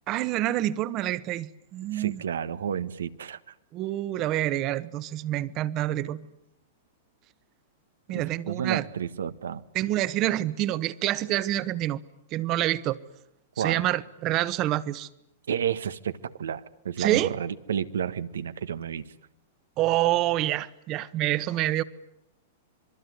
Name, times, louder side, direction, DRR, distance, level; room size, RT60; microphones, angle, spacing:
voice 1, 0.1-2.2 3.7-6.2 8.1-8.8 9.7-12.0 12.3-13.0 13.6-15.1 17.0-17.3 19.8-21.8, right 14 dB, 40° right, 1.3 m, -27 dB
voice 2, 1.9-3.5 8.1-9.6 13.6-13.8 15.5-19.1, right 8 dB, 85° right, 1.3 m, -31 dB
26.5 x 22.5 x 9.6 m
hypercardioid pair, 120°, 0 cm